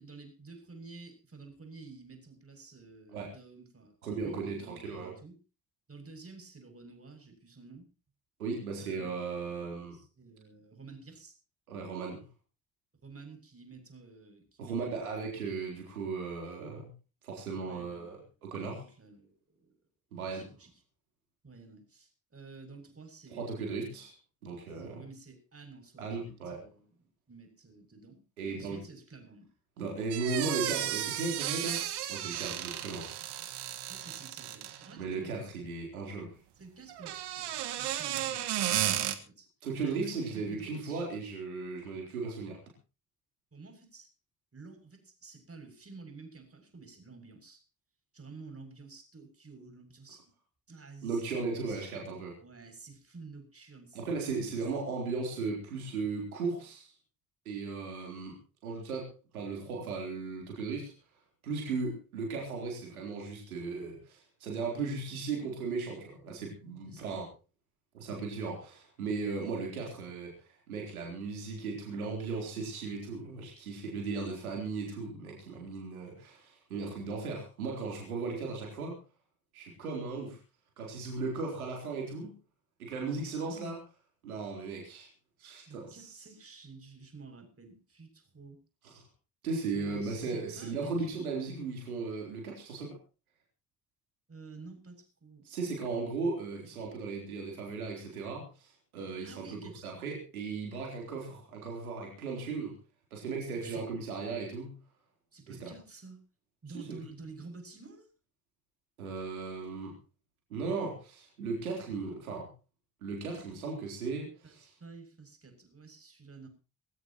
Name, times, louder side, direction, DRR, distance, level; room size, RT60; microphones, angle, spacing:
voice 1, 0.0-5.4 5.9-7.9 8.8-11.3 13.0-15.0 17.6-18.3 18.6-19.8 20.2-20.7 21.4-24.0 24.7-29.5 33.9-35.3 36.6-39.5 39.8-41.1 43.5-44.1 44.5-47.6 48.1-50.3 50.7-51.9 52.4-54.9 64.7-64.9 66.8-67.2 83.4-83.8 85.7-88.6 89.7-91.3 94.3-95.5 99.2-99.8 103.5-103.9 105.3-106.2 106.6-108.1 114.4-116.5, right 4 dB, 35° right, 6 dB, 7.1 m, -51 dB
voice 2, 4.0-4.6 4.8-5.1 8.4-10.0 11.7-12.2 14.6-16.9 17.2-18.2 18.4-18.8 20.1-20.5 23.3-24.1 24.4-25.0 26.0-26.6 28.4-28.8 29.8-31.8 32.1-33.3 35.0-36.3 39.6-42.6 51.0-52.4 53.9-56.9 57.5-58.3 58.6-60.9 61.4-67.2 67.9-79.0 79.5-80.4 80.8-82.3 82.8-83.8 84.2-85.1 85.4-86.0 88.8-89.0 89.4-92.9 95.4-102.8 103.1-104.8 105.5-105.7 106.7-107.0 109.0-109.9 110.5-112.5 113.0-114.7, right 4 dB, 90° right, -1 dB, 3.9 m, -36 dB
sound 1, 30.1-34.9 36.9-39.1, right 12 dB, 70° right, 1.8 m, -34 dB
22.0 x 16.0 x 3.0 m, 0.34 s
hypercardioid pair, 40°, 42 cm